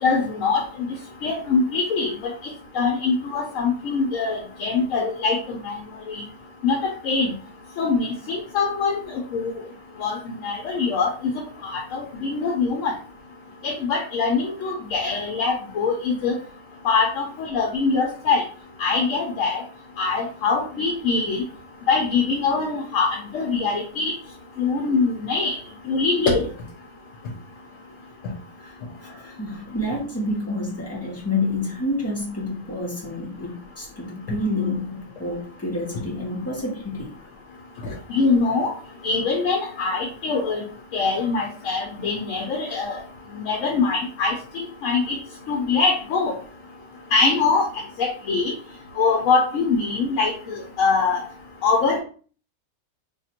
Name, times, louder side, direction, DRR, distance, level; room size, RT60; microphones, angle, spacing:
voice 1, 0.0-0.6 1.2-2.1 2.7-5.8 6.1-6.2 6.6-7.3 7.8-9.6 10.0-11.1 11.6-12.9 13.6-16.4 16.8-18.4 18.8-19.6 20.0-21.4 21.9-24.1 24.6-25.6 25.9-26.5 37.8-38.7 39.0-40.6 40.9-43.0 43.5-45.2 45.5-46.3 47.1-47.6 48.0-48.5 49.0-51.2 51.6-52.0, left 4 dB, 70° left, 1 dB, 1.0 m, -23 dB
voice 2, 29.0-37.1, left 2 dB, 10° left, -3 dB, 0.9 m, -28 dB
2.8 x 2.4 x 4.2 m, 0.41 s
omnidirectional pair, 1.5 m